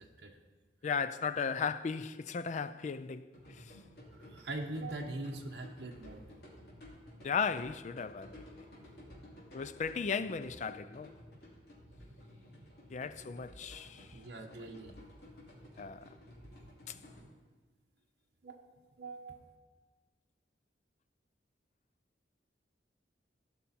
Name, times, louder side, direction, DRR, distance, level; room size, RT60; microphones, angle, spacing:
voice 1, 0.8-3.8 7.2-8.5 9.5-11.1 12.9-14.2 15.8-16.1 16.9-17.0, left 5 dB, 40° left, 0.3 m, -36 dB
sound 1, 3.3-17.2, left 1 dB, 60° left, 2.9 m, -54 dB
voice 2, 4.1-6.2 14.1-14.9 18.4-18.6 19.0-19.4, right 2 dB, 60° right, 0.9 m, -42 dB
16.0 x 5.8 x 4.3 m
head